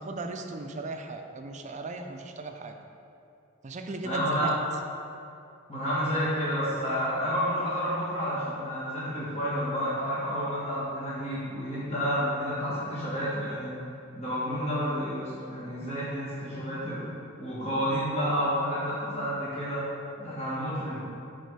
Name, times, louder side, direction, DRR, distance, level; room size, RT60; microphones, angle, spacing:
voice 1, 0.0-2.8 3.6-4.6, right 3 dB, 35° right, 5 dB, 0.4 m, -37 dB
voice 2, 4.0-4.5 5.7-13.7 14.1-17.0 17.4-19.8 20.2-21.0, equal, 30° left, -10 dB, 1.6 m, -30 dB
6.9 x 4.1 x 4.7 m, 2.7 s
head